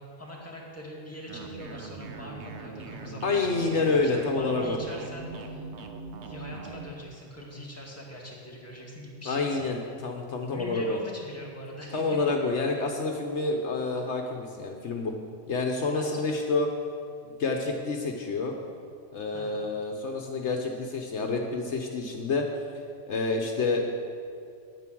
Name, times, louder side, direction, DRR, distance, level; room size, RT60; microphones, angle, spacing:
voice 1, 0.0-5.7 6.2-9.8 10.5-12.2 15.9-16.4 19.3-19.6, equal, 10° left, -4 dB, 2.0 m, -43 dB
sound 1, 1.3-6.9, right 3 dB, 65° right, 1.1 m, -41 dB
voice 2, 3.2-4.8 9.2-11.0 11.9-15.1 15.5-16.7 17.2-18.6 19.1-22.4 23.1-23.9, left 3 dB, 70° left, 2 dB, 1.2 m, -28 dB
9.4 x 9.1 x 6.2 m, 2.4 s
omnidirectional pair, 1.3 m